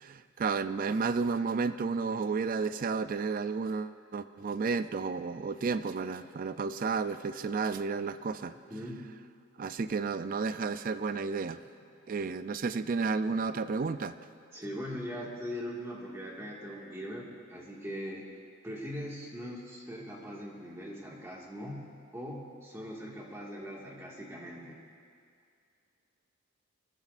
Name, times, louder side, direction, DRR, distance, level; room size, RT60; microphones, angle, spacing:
voice 1, 0.0-8.5 9.6-11.6 12.1-14.2, right 4 dB, 40° right, 12 dB, 0.4 m, -32 dB
voice 2, 8.5-9.0 14.5-18.2 18.6-21.8 22.1-24.8, equal, 15° right, -3 dB, 1.8 m, -41 dB
20.0 x 14.0 x 2.5 m, 2.3 s
head